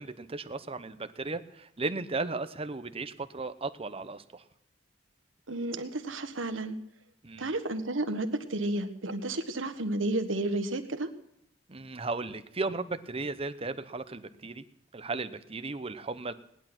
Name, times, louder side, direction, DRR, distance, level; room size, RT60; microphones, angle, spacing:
voice 1, 0.0-4.4 7.2-7.5 11.7-14.6 14.9-16.3, right 3 dB, 30° right, 11 dB, 0.9 m, -35 dB
voice 2, 5.5-6.8 7.4-11.1, right 2 dB, 90° right, 9 dB, 1.5 m, -32 dB
18.5 x 11.0 x 6.1 m, 0.77 s
head